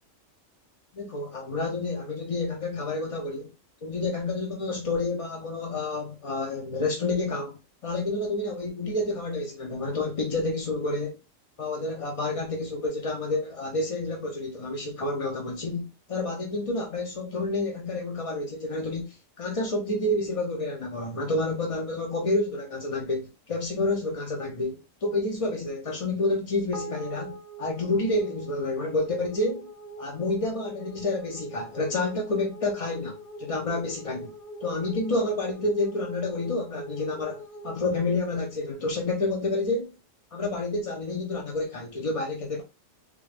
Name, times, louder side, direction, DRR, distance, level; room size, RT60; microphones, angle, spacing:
voice 1, 0.9-3.5 3.8-11.2 11.6-29.7 30.0-34.3 34.6-39.9 40.3-42.6, left 2 dB, 50° left, 0.4 m, -29 dB
sound 1, 26.7-39.2, right 1 dB, 5° left, 0.6 m, -43 dB
3.7 x 2.2 x 3.2 m
omnidirectional pair, 1.4 m